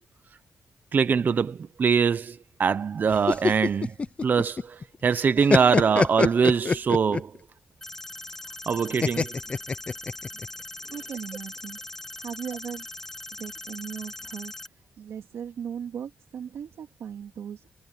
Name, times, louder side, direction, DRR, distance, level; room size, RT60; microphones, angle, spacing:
voice 1, 0.9-3.9 4.2-7.3 8.7-9.4, right 6 dB, 40° right, 0.7 m, -23 dB
sound 1, 3.1-4.8 5.1-7.4 9.0-10.5, left 4 dB, 25° left, 0.5 m, -24 dB
sound 2, 7.8-14.7, left 2 dB, 10° left, 1.4 m, -40 dB
voice 2, 10.9-11.8 12.2-12.9 13.3-14.5 15.0-17.7, right 8 dB, 80° right, 2.8 m, -37 dB
wide cardioid pair, 155°, 5 cm